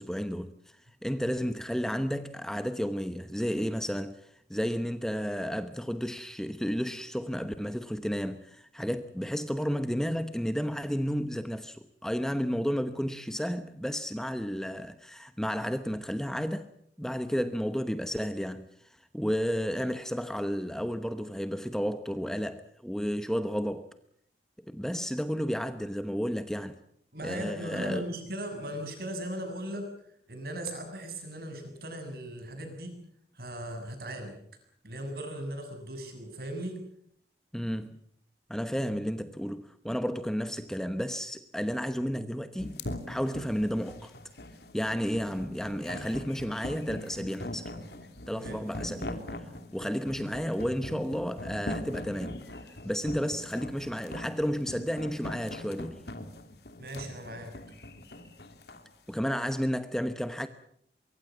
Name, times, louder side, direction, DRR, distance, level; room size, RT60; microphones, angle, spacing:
voice 1, 0.0-16.7 17.0-23.9 24.7-26.8 27.2-28.0 37.5-38.0 38.5-44.1 44.7-47.7 48.3-49.5 49.7-52.4 52.8-56.1 59.1-60.5, equal, 5° left, 0.9 m, -32 dB
voice 2, 27.1-33.0 33.3-34.4 34.8-36.8 48.3-48.6 56.8-57.5, right 1 dB, 55° right, 7.3 m, -38 dB
sound 1, 42.6-58.9, left 1 dB, 65° left, 2.9 m, -41 dB
24.0 x 23.5 x 7.3 m
head